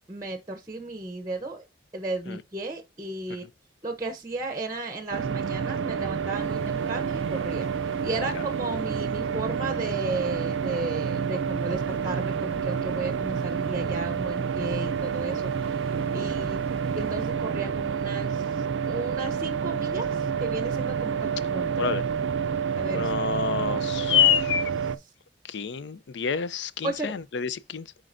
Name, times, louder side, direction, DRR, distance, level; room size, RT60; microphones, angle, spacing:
voice 1, 0.1-1.6 1.9-3.4 3.8-7.7 8.0-15.8 16.1-16.6 17.0-22.1 22.8-24.3 26.8-27.1, right 2 dB, 20° right, 0.8 m, -34 dB
sound 1, 5.1-25.0, right 6 dB, 75° right, 0.4 m, -29 dB
sound 2, 6.3-17.3, equal, 5° left, 1.3 m, -48 dB
voice 2, 22.9-24.7 25.5-27.8, left 8 dB, 65° left, 0.4 m, -27 dB
7.5 x 5.0 x 2.6 m
head